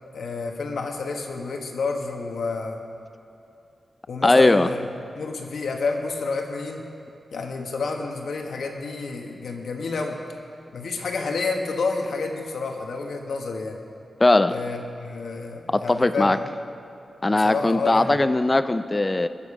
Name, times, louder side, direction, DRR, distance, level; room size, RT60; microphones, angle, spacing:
voice 1, 0.1-2.8 4.1-4.8 5.1-6.8 7.3-10.2 10.7-13.8 14.5-16.5 17.3-18.2, left 4 dB, 85° left, 2 dB, 1.3 m, -29 dB
voice 2, 4.2-4.7 14.2-14.5 15.7-16.4 17.2-19.3, left 2 dB, 20° left, 11 dB, 0.4 m, -19 dB
21.0 x 7.1 x 4.9 m, 2.7 s
wide cardioid pair, 130°, 0 cm